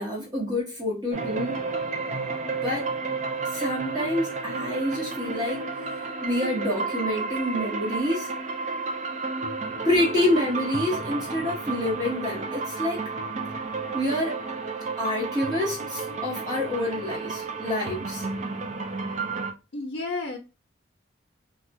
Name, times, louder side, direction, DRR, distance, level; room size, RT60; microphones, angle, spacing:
voice 1, 0.0-1.6 2.6-2.9 3.5-5.7 6.2-8.3 9.8-13.1 13.9-14.4 15.0-18.3, left 1 dB, 20° right, 1.0 m, -27 dB
sound 1, 1.1-19.5, right 4 dB, 40° right, 0.4 m, -32 dB
voice 2, 19.7-20.4, left 3 dB, 60° left, 0.6 m, -31 dB
2.3 x 2.3 x 3.9 m
head